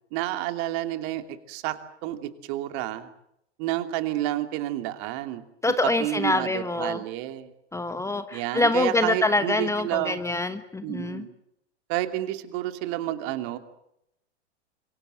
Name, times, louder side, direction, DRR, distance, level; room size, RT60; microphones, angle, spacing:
voice 1, 0.1-3.1 3.6-7.5 8.3-10.2 10.8-11.3 11.9-13.6, right 14 dB, 45° right, 8 dB, 2.8 m, -30 dB
voice 2, 5.6-7.0 7.7-11.2, left 2 dB, 10° left, 11 dB, 1.3 m, -25 dB
27.5 x 24.0 x 7.8 m, 0.81 s
figure-of-eight pair, 95°, 35 cm